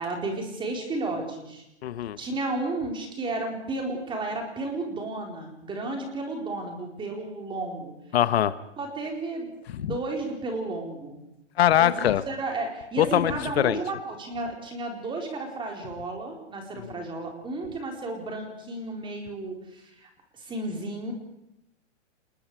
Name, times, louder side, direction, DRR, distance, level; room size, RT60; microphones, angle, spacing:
voice 1, 0.0-1.6 2.2-7.9 8.8-11.2 11.8-21.1, right 2 dB, 15° right, 2 dB, 4.3 m, -33 dB
voice 2, 1.8-2.2 8.1-8.6 9.7-9.9 11.6-12.2 13.0-13.8, left 11 dB, 55° left, 14 dB, 1.3 m, -22 dB
28.5 x 21.5 x 4.9 m, 0.83 s
hypercardioid pair, 150°, 36 cm